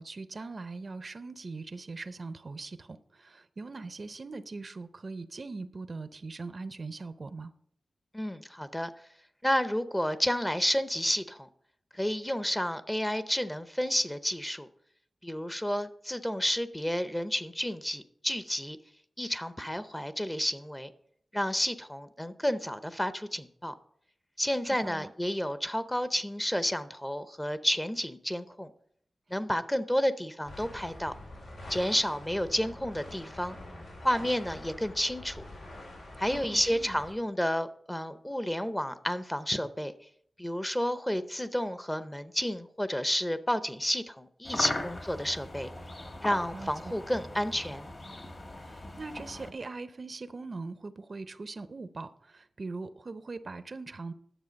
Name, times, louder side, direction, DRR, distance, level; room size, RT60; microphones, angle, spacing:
voice 1, 0.0-7.5 24.6-25.1 36.3-37.0 46.5-47.0 48.6-54.1, right 3 dB, 50° right, 0.6 m, -41 dB
voice 2, 8.1-8.9 9.4-11.5 11.9-14.7 15.2-18.8 19.2-20.9 21.3-23.7 24.4-28.7 29.3-31.1 31.7-33.6 34.0-35.4 36.2-39.9 40.4-45.7 46.2-47.9, equal, 10° left, 0.7 m, -31 dB
sound 1, 30.4-37.1, left 1 dB, 90° left, 3.8 m, -45 dB
sound 2, 44.4-49.5, left 2 dB, 45° left, 1.7 m, -39 dB
11.0 x 7.1 x 5.2 m
wide cardioid pair, 85°, 0 cm